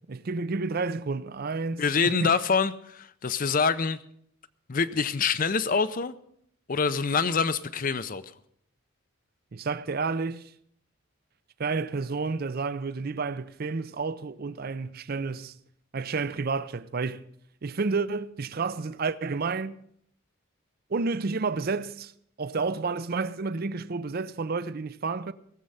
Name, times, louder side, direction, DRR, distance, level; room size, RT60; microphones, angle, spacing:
voice 1, 0.1-2.4 9.5-10.4 11.6-15.5 15.9-17.3 17.6-19.8 20.9-22.1 22.4-25.3, right 4 dB, 45° right, 0.5 m, -30 dB
voice 2, 1.8-4.0 4.7-6.1 6.7-8.2, left 5 dB, 40° left, 0.5 m, -25 dB
18.0 x 7.7 x 5.5 m
head